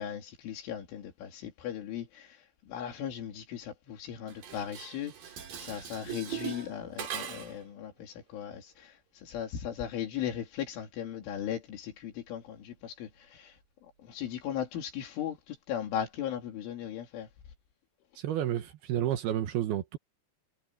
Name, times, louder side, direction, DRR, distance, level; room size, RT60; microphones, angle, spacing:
voice 1, 0.0-2.4 2.7-5.1 5.6-8.9 9.2-13.5 14.1-17.3, left 9 dB, 85° left, 5.3 m, -37 dB
Dishes pots and pans, 4.3-7.7, right 9 dB, 50° right, 3.9 m, -40 dB
voice 2, 18.2-20.0, right 11 dB, 70° right, 2.6 m, -31 dB
omnidirectional pair, 5.4 m